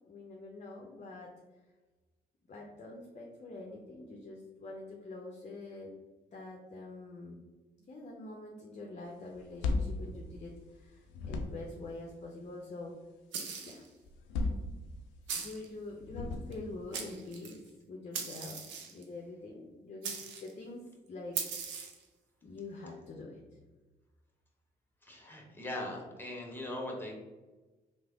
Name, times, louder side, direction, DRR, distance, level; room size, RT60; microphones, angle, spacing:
voice 1, 0.1-1.3 2.5-5.9 6.3-7.4 7.9-12.9 13.6-13.8 15.3-17.6 17.9-21.5 22.4-23.4, left 2 dB, 40° left, 0 dB, 0.6 m, -45 dB
sound 1, 9.3-10.8 11.1-11.9 14.0-15.3 16.0-16.8, left 3 dB, 80° left, 0.4 m, -35 dB
sound 2, 13.3-13.9 15.3-15.7 16.5-16.6 16.9-17.6 18.1-19.0 20.0-20.5 21.4-22.0, right 6 dB, 75° right, 0.6 m, -39 dB
voice 2, 25.0-27.1, left 1 dB, 10° left, 0 dB, 1.1 m, -40 dB
3.2 x 2.0 x 3.5 m, 1.2 s
hypercardioid pair, 45°, 19 cm